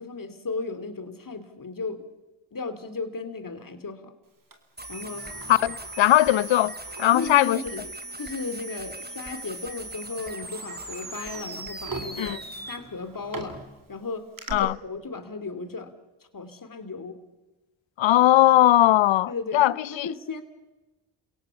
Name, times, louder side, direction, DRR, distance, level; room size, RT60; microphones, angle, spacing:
voice 1, 0.0-2.0 2.5-4.1 4.9-5.3 7.0-7.8 8.2-12.4 12.7-13.6 13.9-15.9 16.3-17.2 19.3-20.4, left 4 dB, 40° left, 2.9 m, -35 dB
Sliding door, 4.5-7.7 8.1-8.2 9.1-9.3 9.8-14.5, right 3 dB, 40° right, 3.6 m, -43 dB
sound 1, 4.8-12.8, right 2 dB, 20° right, 2.6 m, -39 dB
voice 2, 5.5-6.7 7.0-7.6 12.2-12.4 14.5-14.7 18.0-20.1, left 14 dB, 65° left, 0.7 m, -19 dB
29.5 x 17.0 x 7.1 m
supercardioid pair, 40°, 50 cm